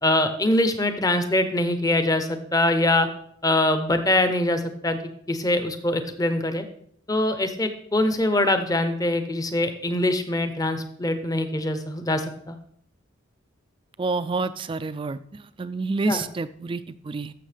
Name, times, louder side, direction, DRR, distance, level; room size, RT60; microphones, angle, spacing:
voice 1, 0.0-3.1 3.4-5.0 5.3-6.6 7.1-12.5 16.1-16.2, left 1 dB, 15° left, 8 dB, 0.7 m, -23 dB
voice 2, 14.0-17.3, right 3 dB, 25° right, 13 dB, 0.3 m, -28 dB
13.5 x 6.4 x 3.4 m, 0.67 s
head